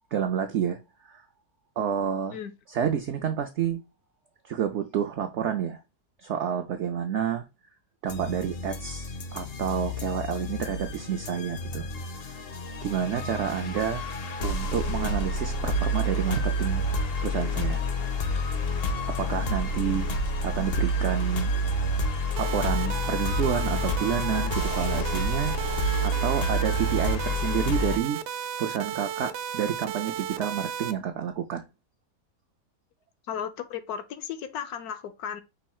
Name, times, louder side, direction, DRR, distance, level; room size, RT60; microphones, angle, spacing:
voice 1, 0.1-1.2 1.8-2.4 2.7-3.8 4.4-5.8 6.2-7.4 8.0-11.9 12.8-14.1 14.4-16.8 17.2-17.8 19.1-20.1 20.4-21.5 22.4-28.2 28.6-31.6, right 8 dB, 70° right, 0.6 m, -29 dB
sound 1, 8.1-28.0, equal, 55° left, 0.7 m, -29 dB
sound 2, 22.4-30.9, right 9 dB, 85° right, 1.1 m, -34 dB
voice 2, 33.3-35.4, left 8 dB, 80° left, 1.1 m, -35 dB
5.4 x 2.3 x 4.2 m
omnidirectional pair, 1.7 m